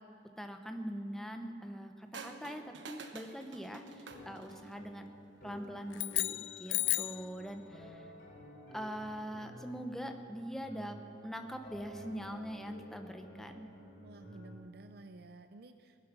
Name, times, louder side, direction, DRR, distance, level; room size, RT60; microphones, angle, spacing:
voice 1, 0.4-5.1 5.4-8.1 8.7-13.7, equal, ahead, 5 dB, 0.8 m, -43 dB
sound 1, 2.1-4.9 5.9-6.3, right 3 dB, 80° right, 1.1 m, -49 dB
sound 2, 4.1-14.5, equal, 60° left, 3.4 m, -53 dB
sound 3, 5.9-7.3, left 20 dB, 75° left, 0.3 m, -33 dB
voice 2, 14.0-16.1, right 2 dB, 55° right, 9 dB, 0.5 m, -53 dB
19.5 x 11.0 x 5.8 m, 2.5 s
head